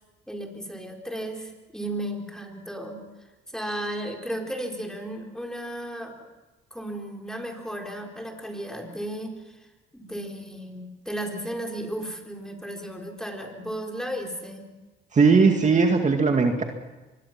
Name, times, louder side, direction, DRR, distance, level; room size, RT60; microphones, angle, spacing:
voice 1, 0.3-3.0 3.5-6.3 6.7-9.5 9.9-14.7, right 1 dB, 5° left, 2 dB, 4.3 m, -34 dB
voice 2, 15.1-16.6, right 4 dB, 35° right, 3 dB, 2.1 m, -19 dB
24.5 x 22.0 x 6.0 m, 1.1 s
cardioid pair, 90°, 20 cm